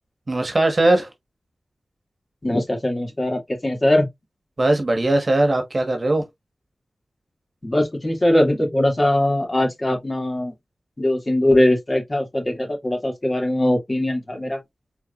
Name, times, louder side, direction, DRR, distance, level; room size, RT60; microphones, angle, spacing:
voice 1, 0.3-1.1 4.6-6.2, right 2 dB, 40° right, 1.4 m, -19 dB
voice 2, 2.4-4.1 7.6-10.5 11.0-14.6, left 1 dB, 30° left, 2.4 m, -21 dB
4.6 x 3.8 x 2.4 m
cardioid pair, 55°, 0 cm